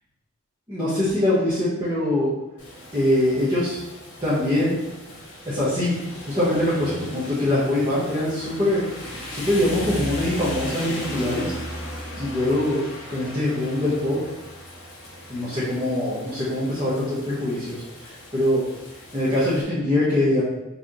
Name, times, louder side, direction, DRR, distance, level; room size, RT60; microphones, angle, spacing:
voice 1, 0.7-2.3 2.9-3.8 4.2-4.8 5.4-11.5 12.2-12.8 13.1-14.2 15.3-18.6 19.1-20.4, left 1 dB, 20° right, -10 dB, 1.2 m, -23 dB
Rain, 2.6-19.6, equal, 60° left, 1.5 m, -37 dB
4.9 x 3.4 x 3.1 m, 0.94 s
head